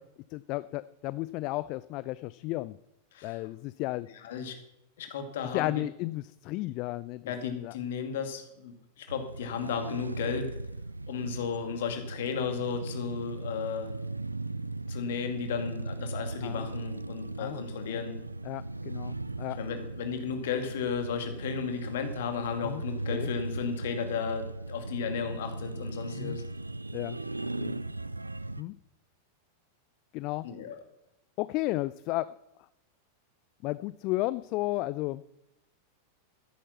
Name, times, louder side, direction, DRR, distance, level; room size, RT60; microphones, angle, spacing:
voice 1, 0.3-2.8 3.2-4.1 5.5-7.7 16.4-16.7 17.4-17.6 17.9-18.0 18.4-19.6 22.6-22.8 23.1-23.3 26.1-26.4 26.9-27.2 27.6-27.8 28.6-28.7 30.1-30.5 31.4-32.4 33.6-35.2, left 19 dB, 40° left, 18 dB, 0.4 m, -33 dB
voice 2, 4.2-4.6 5.0-5.8 7.3-10.5 11.1-13.9 14.9-18.2 19.6-26.4 30.4-30.8, left 7 dB, 55° left, 6 dB, 2.2 m, -34 dB
sound 1, 9.1-28.6, right 2 dB, 85° right, 0.4 m, -37 dB
13.5 x 10.0 x 6.0 m, 0.87 s
figure-of-eight pair, 90°, 0 cm